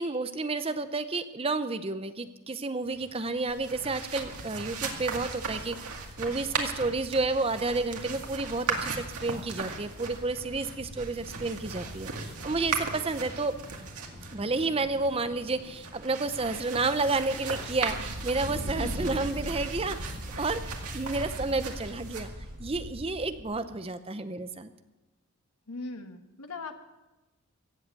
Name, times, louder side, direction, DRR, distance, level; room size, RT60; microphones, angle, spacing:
voice 1, 0.0-5.8 6.2-13.5 14.3-22.3 22.6-24.7, right 3 dB, 25° right, 11 dB, 0.6 m, -31 dB
sound 1, 2.8-22.5, equal, 45° right, 6.1 m, -48 dB
sound 2, 3.5-23.4, right 3 dB, 85° right, 2.1 m, -37 dB
voice 2, 25.7-26.7, left 3 dB, 85° left, 6 dB, 1.5 m, -39 dB
16.0 x 7.8 x 8.3 m, 1.1 s
head